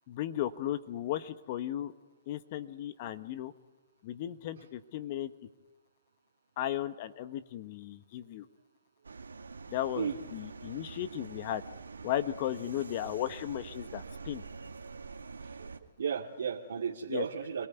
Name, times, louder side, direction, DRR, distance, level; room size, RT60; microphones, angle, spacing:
voice 1, 0.1-1.9 2.3-3.5 4.0-5.3 6.6-8.4 9.7-10.1 10.3-11.6 12.0-14.4 17.1-17.2, left 12 dB, 45° left, 12 dB, 1.3 m, -35 dB
sound 1, 9.0-15.8, right 4 dB, 90° right, 1.9 m, -46 dB
voice 2, 14.4-15.1 15.4-17.7, right 7 dB, 70° right, 0 dB, 2.3 m, -36 dB
27.5 x 19.0 x 9.5 m, 1.3 s
hypercardioid pair, 130°, 0 cm